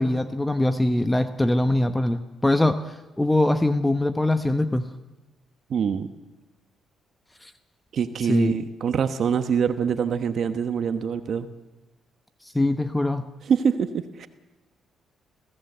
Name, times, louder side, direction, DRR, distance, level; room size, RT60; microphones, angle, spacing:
voice 1, 0.0-4.8 7.4-7.5 8.3-8.5 12.5-13.2, left 1 dB, 10° left, 9 dB, 1.0 m, -22 dB
voice 2, 5.7-6.1 7.9-11.5 13.4-14.3, right 7 dB, 60° right, 9 dB, 1.1 m, -24 dB
24.5 x 16.0 x 7.9 m, 1.1 s
cardioid pair, 90°, 0 cm